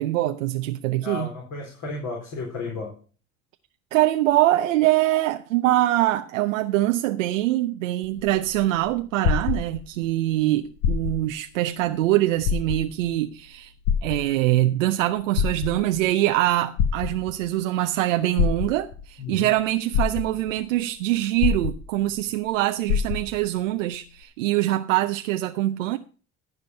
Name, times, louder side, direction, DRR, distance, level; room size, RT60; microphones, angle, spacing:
voice 1, 0.0-1.3 3.9-13.7 14.0-26.0, right 15 dB, 90° right, 0.6 m, -23 dB
voice 2, 1.0-2.9 19.2-19.5, left 3 dB, 55° left, 3.9 m, -33 dB
sound 1, 8.0-10.1 10.7-11.4 11.8-11.9 12.4-13.1 13.9-14.7 15.2-16.0 16.8-17.5 18.4-19.1 19.6-19.7 19.9-20.6 21.4-22.2 22.5-22.6 22.9-23.5 24.2-24.3, left 8 dB, 75° left, 1.1 m, -25 dB
15.0 x 5.2 x 5.6 m
hypercardioid pair, 70°, 37 cm